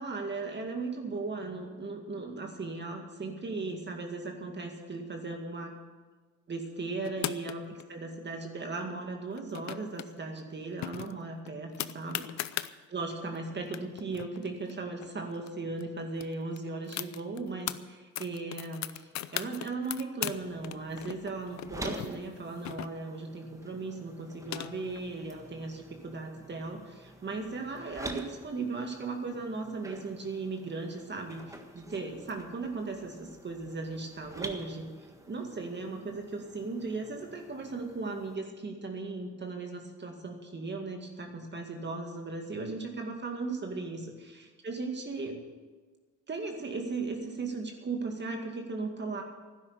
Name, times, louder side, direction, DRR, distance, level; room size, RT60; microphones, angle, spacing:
voice 1, 0.0-5.8 6.5-7.6 7.9-34.9 35.3-45.4 46.3-49.2, right 3 dB, 35° right, 3 dB, 2.2 m, -37 dB
sound 1, 7.0-7.8 9.3-10.1 10.4-10.5 10.8-12.7 13.4-13.5 13.6-15.5 15.8-15.9 16.2-17.8 18.2-20.4 20.6-23.2 24.1-25.0, left 13 dB, 65° left, 0.6 m, -38 dB
sound 2, 20.3-38.4, right 2 dB, 10° right, 1.5 m, -48 dB
12.0 x 10.5 x 8.6 m, 1.4 s
cardioid pair, 90°, 30 cm